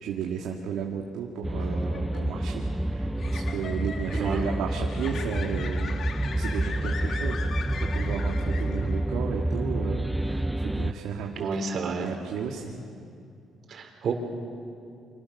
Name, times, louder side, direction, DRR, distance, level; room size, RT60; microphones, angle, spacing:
voice 1, 0.0-6.0 6.3-11.5 11.8-12.8, right 7 dB, 85° right, 0 dB, 2.1 m, -34 dB
sound 1, 1.4-10.9, right 1 dB, 5° right, 0.6 m, -28 dB
sound 2, 1.6-9.2, left 5 dB, 60° left, 1.9 m, -40 dB
voice 2, 4.1-4.4 11.4-12.1 13.7-14.1, right 5 dB, 60° right, 3 dB, 4.8 m, -30 dB
29.0 x 25.5 x 6.7 m, 2.4 s
cardioid pair, 90°, 0 cm